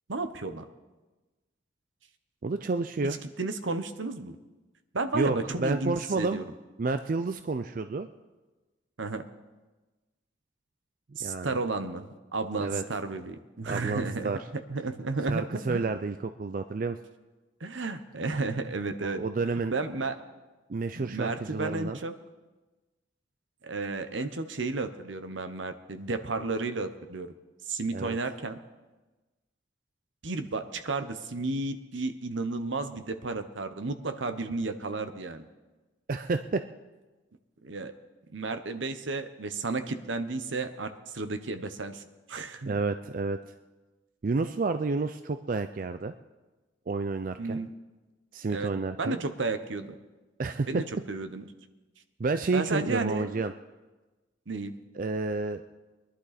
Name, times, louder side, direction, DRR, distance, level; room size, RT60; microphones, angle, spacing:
voice 1, 0.1-0.7 3.0-3.1 3.4-4.4 4.9-6.4 9.0-9.2 11.2-15.8 17.6-19.2 19.7-20.2 21.0-22.1 23.6-27.3 27.7-28.6 30.2-35.5 37.6-37.9 38.3-42.7 47.4-47.7 48.5-48.7 49.0-50.0 50.7-51.4 52.5-53.4 54.5-54.7, right 3 dB, 75° right, 9 dB, 0.9 m, -33 dB
voice 2, 2.4-3.2 5.1-6.4 6.8-8.1 11.2-11.6 12.6-12.8 13.7-14.4 15.3-17.0 19.0-19.7 20.7-22.0 27.9-28.2 36.1-36.6 42.7-43.4 44.2-46.1 46.9-47.6 48.3-49.2 50.4-50.8 52.2-53.5 54.9-55.6, right 3 dB, 45° right, 9 dB, 0.4 m, -30 dB
22.0 x 11.0 x 4.2 m, 1.2 s
head